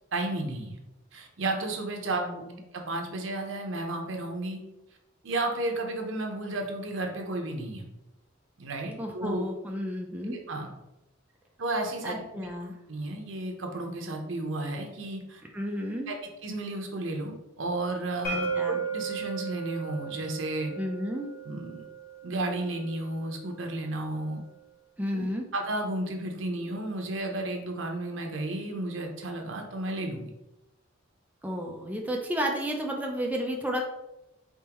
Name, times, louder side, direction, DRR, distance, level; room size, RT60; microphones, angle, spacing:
voice 1, 0.1-0.8 1.1-2.2 2.7-4.6 5.2-7.9 8.6-9.5 10.3-10.7 11.6-12.2 12.9-15.4 16.1-16.2 16.4-20.7 21.4-21.8 22.2-24.4 25.1-25.2 25.5-30.3, right 2 dB, 75° right, 2 dB, 0.8 m, -33 dB
voice 2, 2.1-2.6 9.0-10.4 12.0-12.7 15.5-16.1 18.3-18.8 20.8-21.3 25.0-25.4 31.4-33.8, equal, 10° right, 0 dB, 0.4 m, -32 dB
sound 1, 18.2-24.0, right 5 dB, 50° left, 1.5 m, -36 dB
4.3 x 3.6 x 3.0 m, 0.94 s
head